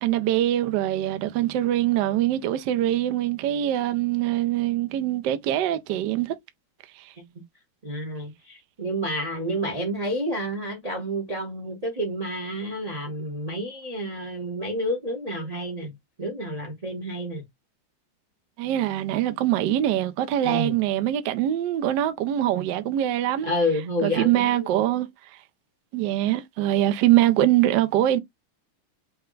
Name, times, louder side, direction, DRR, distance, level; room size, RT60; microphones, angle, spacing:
voice 1, 0.0-6.3 7.0-7.1 18.6-23.5 24.0-25.1 25.9-28.2, right 13 dB, 70° right, 1.1 m, -23 dB
voice 2, 7.8-15.9 16.2-17.4 20.4-20.7 23.4-24.7, equal, 30° right, 0.7 m, -29 dB
5.6 x 2.1 x 3.7 m
omnidirectional pair, 2.4 m